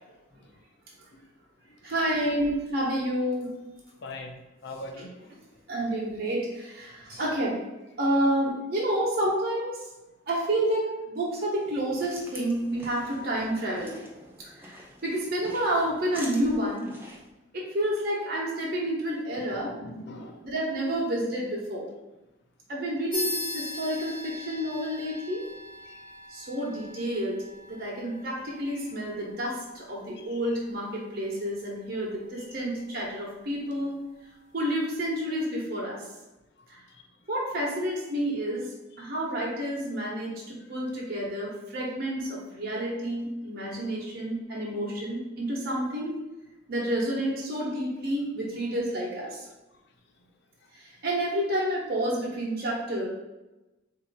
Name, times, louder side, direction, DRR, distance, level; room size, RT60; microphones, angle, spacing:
voice 1, 1.8-3.6 5.0-5.1 5.7-7.6 8.0-9.9 10.3-14.0 14.4-16.9 17.5-19.7 20.4-21.9 22.7-25.4 26.3-27.4 27.7-34.0 34.5-36.1 36.7-36.8 37.3-46.2 46.7-49.5 50.7-53.1, right 1 dB, 55° right, -4 dB, 1.2 m, -29 dB
voice 2, 4.0-4.3 4.6-5.2 19.3-20.4 25.9-26.0, left 1 dB, 65° left, 4 dB, 0.6 m, -40 dB
sound 1, 11.6-17.3, equal, 10° right, 0.8 m, -46 dB
sound 2, 23.1-33.1, left 2 dB, 25° left, 1.3 m, -41 dB
4.4 x 2.8 x 4.1 m, 1.0 s
head